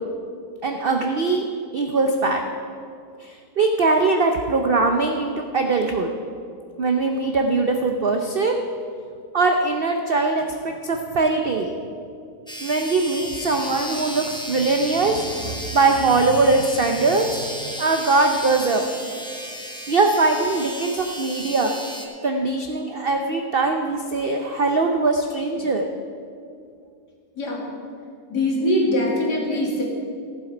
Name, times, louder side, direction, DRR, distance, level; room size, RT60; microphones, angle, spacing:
voice 1, 0.6-1.4 1.7-2.4 3.2-6.1 6.8-8.6 9.3-11.7 12.6-18.8 19.9-21.7 22.2-25.8, right 3 dB, 65° right, 4 dB, 0.5 m, -21 dB
sound 1, 12.5-22.1, equal, 5° left, 0.4 m, -34 dB
voice 2, 28.3-29.8, left 1 dB, 70° left, -3 dB, 2.7 m, -22 dB
15.0 x 7.5 x 4.9 m, 2.4 s
omnidirectional pair, 1.8 m